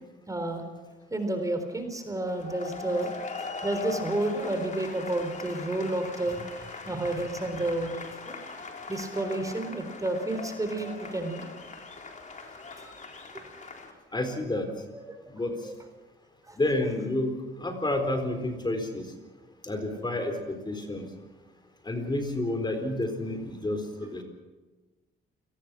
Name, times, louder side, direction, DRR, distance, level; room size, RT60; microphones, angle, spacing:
voice 1, 0.3-0.6 1.1-3.1 3.6-6.4 6.9-8.0 8.2-8.4 8.9-11.4 12.8-12.9 13.3-13.4 15.1-15.2 15.6-15.7 16.4-16.6, right 2 dB, 15° right, 6 dB, 3.9 m, -30 dB
sound 1, 2.3-13.9, left 4 dB, 40° left, 4.0 m, -41 dB
voice 2, 14.1-14.7 15.3-15.5 16.6-19.0 19.6-21.0 21.8-24.2, left 1 dB, 20° left, 6 dB, 4.1 m, -30 dB
28.5 x 19.0 x 6.3 m, 1.3 s
cardioid pair, 90°, 20 cm